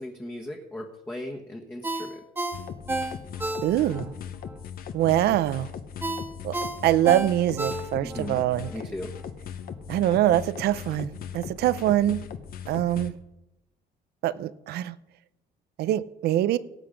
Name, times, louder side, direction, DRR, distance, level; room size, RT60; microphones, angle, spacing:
voice 1, 0.0-2.2 8.0-8.4 8.7-9.1, left 1 dB, 10° left, 1.4 m, -37 dB
Ringtone, 1.8-4.1 4.5-4.6 6.0-8.3 8.6-8.8, right 2 dB, 10° right, 1.4 m, -31 dB
sound 1, 2.5-13.1, left 8 dB, 60° left, 1.0 m, -39 dB
voice 2, 3.6-4.1 4.9-5.7 6.4-6.5 6.8-8.7 9.9-12.2 12.7-13.1 14.2-15.0 15.8-16.6, right 13 dB, 70° right, 0.6 m, -24 dB
18.0 x 7.8 x 5.1 m
cardioid pair, 110°, 17 cm